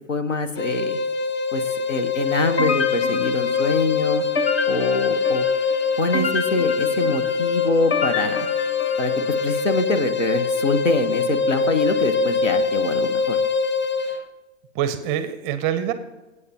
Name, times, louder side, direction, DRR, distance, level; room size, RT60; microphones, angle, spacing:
voice 1, 0.1-1.0 1.5-1.6 1.9-4.2 4.7-5.5 6.0-8.5 9.0-9.1 9.4-13.4, left 2 dB, 85° left, 10 dB, 1.3 m, -24 dB
sound 1, 0.6-14.2, left 5 dB, 30° left, 0.8 m, -23 dB
sound 2, 2.6-9.5, left 3 dB, 55° left, 1.3 m, -28 dB
voice 2, 13.9-14.3 14.7-15.9, right 10 dB, 20° right, 11 dB, 0.5 m, -26 dB
24.0 x 8.3 x 2.9 m, 1.1 s
figure-of-eight pair, 115°, 37 cm